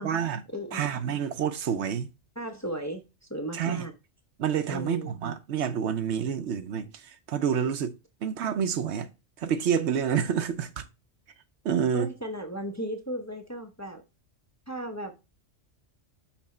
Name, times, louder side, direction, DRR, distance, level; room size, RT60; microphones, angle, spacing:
voice 1, 0.0-0.4 0.7-2.1 3.5-3.9 4.4-8.0 8.2-9.1 9.4-10.8 11.6-12.1, right 8 dB, 70° right, 0.9 m, -28 dB
voice 2, 0.5-0.8 2.4-3.9 4.7-5.1 11.9-14.0 14.7-15.1, right 1 dB, 15° left, 0.7 m, -35 dB
5.9 x 4.2 x 4.2 m
omnidirectional pair, 1.2 m